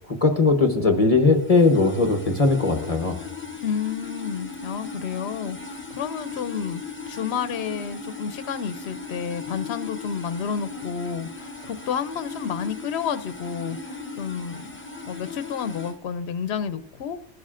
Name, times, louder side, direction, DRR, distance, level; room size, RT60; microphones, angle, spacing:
voice 1, 0.2-3.2, left 3 dB, 35° left, 1.0 m, -19 dB
sound 1, 1.3-16.0, left 4 dB, 10° left, 0.8 m, -38 dB
voice 2, 3.6-6.8 7.1-14.7 15.0-17.3, left 7 dB, 80° left, 0.9 m, -30 dB
20.5 x 11.5 x 2.5 m
omnidirectional pair, 1.1 m